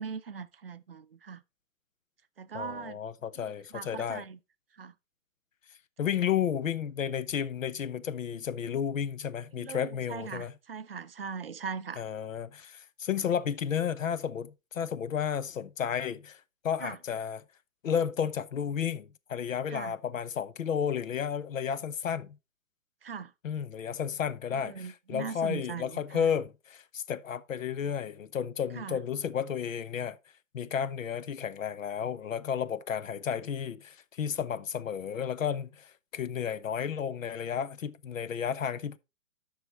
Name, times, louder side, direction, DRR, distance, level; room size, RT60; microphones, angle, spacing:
voice 1, 0.0-1.4 2.4-3.0 3.4-4.4 4.8-4.9 9.5-12.0 16.8-17.0 19.7-19.9 23.0-23.3 24.5-26.3 28.8-29.0, right 6 dB, 45° right, 0.5 m, -40 dB
voice 2, 2.5-4.3 6.0-10.5 12.0-17.4 17.8-22.4 23.4-30.2 30.5-39.0, left 8 dB, 75° left, 0.8 m, -32 dB
11.0 x 6.3 x 3.1 m
hypercardioid pair, 180°, 40 cm